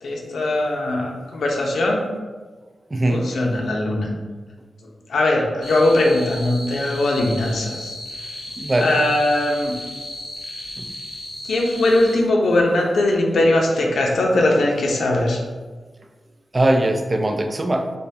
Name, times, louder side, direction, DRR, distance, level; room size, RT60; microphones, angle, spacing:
voice 1, 0.0-2.0 3.1-4.1 4.8-8.0 8.8-9.7 11.4-15.4, left 1 dB, 80° left, 0 dB, 0.8 m, -20 dB
voice 2, 2.9-3.3 8.6-9.0 10.8-10.9 16.5-17.9, right 1 dB, 25° right, 5 dB, 0.3 m, -20 dB
sound 1, 5.6-12.2, left 1 dB, 50° left, 1.0 m, -35 dB
6.6 x 2.3 x 2.8 m, 1.4 s
wide cardioid pair, 140°, 0 cm